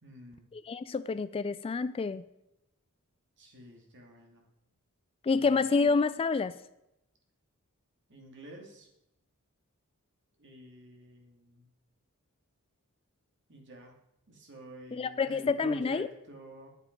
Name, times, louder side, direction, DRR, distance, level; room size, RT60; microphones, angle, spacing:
voice 1, 0.0-0.5 3.4-4.5 5.3-5.6 8.1-8.9 10.4-11.7 13.5-14.0 14.3-16.7, right 1 dB, 55° right, 1 dB, 2.4 m, -49 dB
voice 2, 0.5-2.2 5.2-6.6 14.9-16.1, left 4 dB, 25° left, 14 dB, 0.3 m, -28 dB
10.5 x 8.0 x 5.2 m, 0.85 s
head